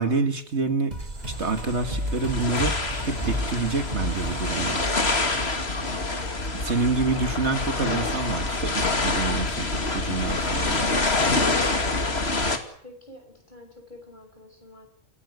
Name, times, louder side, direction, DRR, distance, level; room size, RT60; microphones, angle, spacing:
voice 1, 0.0-2.7 3.0-4.9 6.6-10.9, right 3 dB, 55° right, 7 dB, 2.1 m, -27 dB
sound 1, 0.9-6.2, right 1 dB, 30° right, 2.3 m, -34 dB
sound 2, 1.2-12.6, left 2 dB, 50° left, 2.8 m, -26 dB
voice 2, 5.8-6.9 12.8-14.9, left 1 dB, 35° left, 4 dB, 6.1 m, -48 dB
28.5 x 16.0 x 8.2 m, 0.62 s
omnidirectional pair, 1.4 m